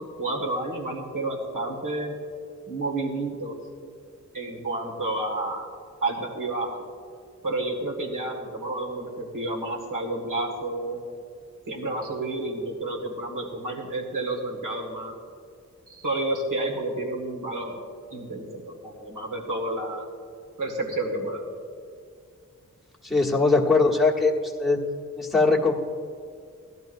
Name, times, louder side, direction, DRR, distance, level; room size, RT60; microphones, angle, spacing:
voice 1, 0.0-2.2 2.7-3.6 4.3-5.7 6.0-6.8 7.4-11.0 11.7-15.1 15.9-17.8 18.1-20.1 20.6-21.4, right 2 dB, 80° right, -1 dB, 1.9 m, -30 dB
voice 2, 23.0-24.3 24.6-24.8 25.2-25.7, left 3 dB, ahead, -4 dB, 1.3 m, -20 dB
17.0 x 12.0 x 2.6 m, 2.2 s
wide cardioid pair, 115°, 31 cm